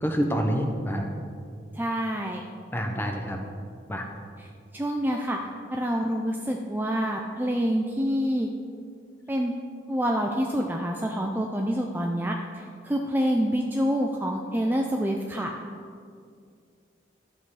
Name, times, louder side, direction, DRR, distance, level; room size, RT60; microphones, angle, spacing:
voice 1, 0.0-1.1 2.7-3.4 3.9-4.1, equal, 10° left, 3 dB, 0.9 m, -27 dB
voice 2, 1.8-2.4 4.4-4.5 4.7-5.4 5.7-8.5 9.3-9.5 9.9-15.5, equal, 10° right, 1 dB, 0.5 m, -27 dB
11.5 x 7.6 x 4.9 m, 2.2 s
head